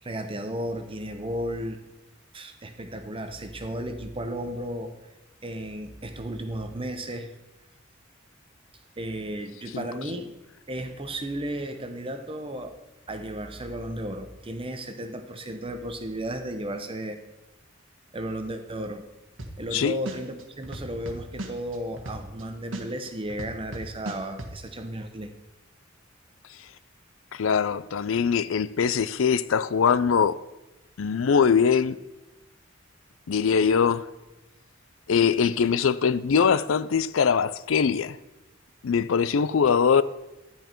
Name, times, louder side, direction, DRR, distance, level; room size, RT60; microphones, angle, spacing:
voice 1, 0.0-1.8 2.3-4.9 5.4-7.3 9.0-10.3 10.7-12.8 13.1-17.2 18.1-19.1 19.6-25.3, right 1 dB, 25° right, 0.9 m, -34 dB
sound 1, 19.4-19.7 20.0-22.4 22.7-24.5, right 1 dB, 65° right, 1.5 m, -36 dB
voice 2, 27.3-30.4 31.0-32.0 33.3-34.0 35.1-38.2 38.8-40.0, left 6 dB, 75° left, 0.5 m, -22 dB
11.5 x 10.0 x 4.5 m
head